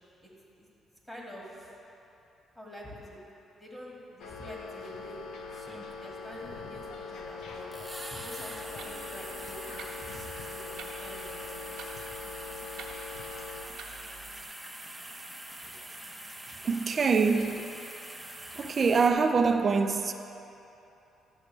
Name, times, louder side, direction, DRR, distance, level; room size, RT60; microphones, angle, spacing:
voice 1, 1.1-1.7 2.6-3.2 3.6-5.2 6.0-7.7 8.1-11.7, equal, 15° left, 2.1 m, -46 dB
sound 1, 4.2-13.7, left 4 dB, 85° left, 0.7 m, -42 dB
sound 2, 5.5-6.2 7.7-19.1, right 1 dB, 5° right, 0.8 m, -44 dB
Clock, 8.5-14.4, right 4 dB, 75° right, 1.0 m, -49 dB
voice 2, 16.6-17.7 18.6-20.1, right 5 dB, 45° right, 0.5 m, -25 dB
11.5 x 7.1 x 3.4 m
cardioid pair, 90°, 0 cm